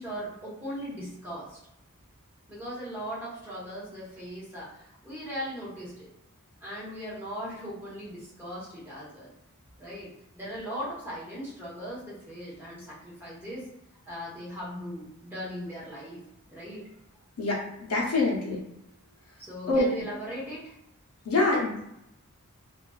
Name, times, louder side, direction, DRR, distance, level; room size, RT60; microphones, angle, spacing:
voice 1, 0.0-1.6 2.5-6.1 6.6-9.3 9.8-13.7 14.0-16.2 16.5-16.9 19.4-20.7, equal, 10° right, -7 dB, 0.9 m, -39 dB
voice 2, 17.4-18.6 19.7-19.8 21.2-21.9, left 2 dB, 80° left, -3 dB, 0.7 m, -26 dB
2.4 x 2.2 x 2.3 m, 0.79 s
head